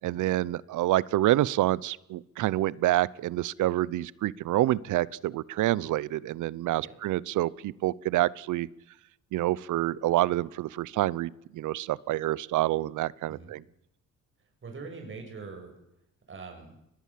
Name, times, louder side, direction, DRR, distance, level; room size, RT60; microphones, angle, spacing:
voice 1, 0.0-8.7 9.3-13.6, right 15 dB, 80° right, 22 dB, 0.8 m, -27 dB
voice 2, 14.6-15.7 16.3-16.8, right 4 dB, 40° right, 3 dB, 7.2 m, -43 dB
22.5 x 20.0 x 7.6 m, 0.81 s
cardioid pair, 90°, 30 cm